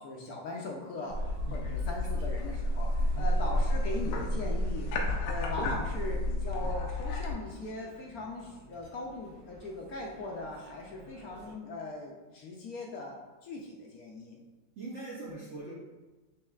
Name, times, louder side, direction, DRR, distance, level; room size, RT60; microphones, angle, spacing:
voice 1, 0.0-4.9 5.2-14.4, left 2 dB, 70° left, -1 dB, 0.9 m, -40 dB
sound 1, 1.0-11.5, right 2 dB, 90° right, 1.3 m, -54 dB
sound 2, 1.1-7.3, left 1 dB, 90° left, 1.3 m, -30 dB
voice 2, 14.8-15.7, right 2 dB, 65° right, -6 dB, 0.7 m, -42 dB
6.2 x 2.8 x 2.3 m, 1.2 s
omnidirectional pair, 1.9 m